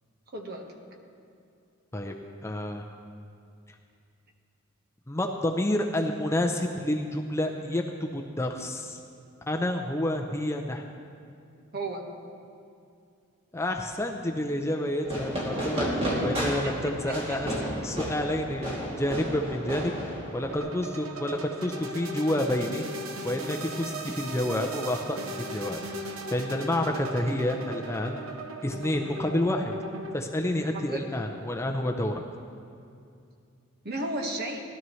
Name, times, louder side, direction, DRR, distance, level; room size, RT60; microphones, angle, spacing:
voice 1, 0.3-0.7 11.7-12.1 15.7-15.8 16.4-17.4 30.5-31.0 33.8-34.6, right 2 dB, 50° right, 2 dB, 1.4 m, -35 dB
voice 2, 2.4-2.9 5.1-9.0 9.5-10.8 13.5-15.9 16.2-17.5 17.8-19.9 20.3-22.8 23.2-25.8 26.3-28.2 28.6-29.7 30.1-32.2, left 1 dB, 15° left, 3 dB, 0.5 m, -29 dB
Fireworks, 15.0-20.6, equal, 30° right, 2.6 m, -32 dB
sound 1, 20.5-30.1, right 1 dB, 90° right, 0.9 m, -38 dB
19.0 x 12.5 x 3.2 m, 2.4 s
head